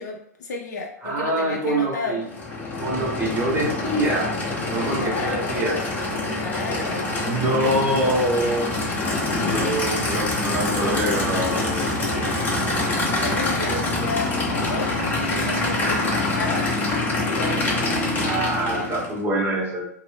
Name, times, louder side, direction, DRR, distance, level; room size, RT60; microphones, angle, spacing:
voice 1, 0.0-2.2 4.9-5.6 6.4-7.1 7.3-8.3 13.2-16.7 17.3-17.9, left 3 dB, 70° left, -1 dB, 0.5 m, -32 dB
voice 2, 1.0-2.3 2.8-4.3 4.7-5.8 7.2-8.7 9.4-12.6 18.2-19.9, right 1 dB, 20° right, -2 dB, 0.9 m, -25 dB
Aircraft / Idling, 2.2-19.2, left 2 dB, 20° left, 0.8 m, -25 dB
2.5 x 2.0 x 3.3 m, 0.73 s
hypercardioid pair, 115°, 9 cm